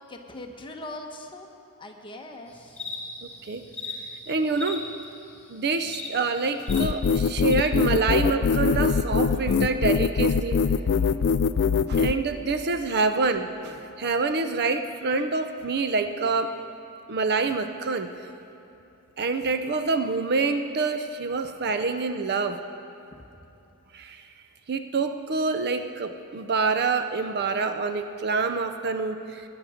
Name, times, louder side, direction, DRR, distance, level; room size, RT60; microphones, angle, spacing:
voice 1, 0.1-1.5 1.8-2.7, left 1 dB, 20° left, 2 dB, 1.1 m, -40 dB
sound 1, 2.5-6.8 7.5-7.7, left 3 dB, 5° left, 2.3 m, -39 dB
voice 2, 4.3-4.9 5.5-10.6 11.9-16.5 17.1-18.1 19.2-22.6 23.9-24.2 24.7-29.4, right 4 dB, 45° right, 8 dB, 0.6 m, -26 dB
sound 2, 6.7-12.1, left 5 dB, 50° left, 0.3 m, -22 dB
20.5 x 9.6 x 5.0 m, 3.0 s
head